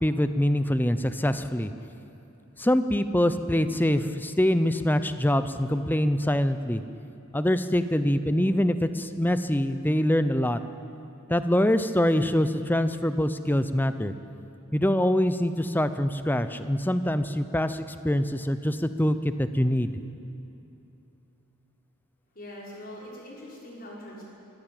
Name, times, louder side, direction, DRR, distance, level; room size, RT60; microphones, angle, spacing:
voice 1, 0.0-1.7 2.6-6.8 7.3-10.6 11.3-14.1 14.7-19.9, left 1 dB, 10° left, 11 dB, 0.7 m, -24 dB
voice 2, 22.3-24.2, left 1 dB, 40° left, -4 dB, 6.0 m, -42 dB
23.5 x 15.0 x 9.1 m, 2.9 s
head